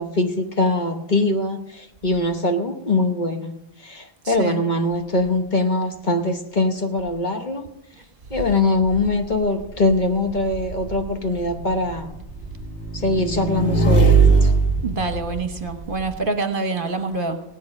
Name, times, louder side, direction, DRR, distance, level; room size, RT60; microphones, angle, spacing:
voice 1, 0.0-7.7 8.3-12.1 12.9-14.5, left 2 dB, 45° left, 5 dB, 1.3 m, -22 dB
voice 2, 4.2-4.6 14.8-17.4, right 3 dB, 50° right, 7 dB, 1.3 m, -26 dB
Motorcycle / Engine, 9.1-16.1, right 4 dB, 80° left, 1.9 m, -21 dB
17.0 x 10.5 x 5.3 m, 0.87 s
omnidirectional pair, 1.2 m